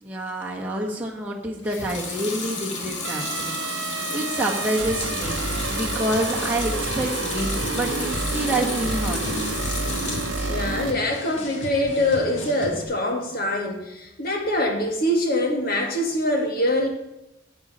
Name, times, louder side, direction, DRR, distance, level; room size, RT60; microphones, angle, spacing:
voice 1, 0.0-3.6 3.9-5.4 5.7-9.6, right 1 dB, 10° right, -4 dB, 1.5 m, -28 dB
Water tap faucet / Sink (filling or washing) / Liquid, 1.6-10.5 10.9-11.7, left 3 dB, 70° left, 2.2 m, -32 dB
sound 1, 3.0-10.9, right 4 dB, 85° right, 0.7 m, -29 dB
sound 2, 4.9-12.8, left 1 dB, 90° left, 1.8 m, -36 dB
voice 2, 10.4-16.9, left 1 dB, 50° left, 2 dB, 2.0 m, -24 dB
10.5 x 8.7 x 4.4 m, 0.90 s
head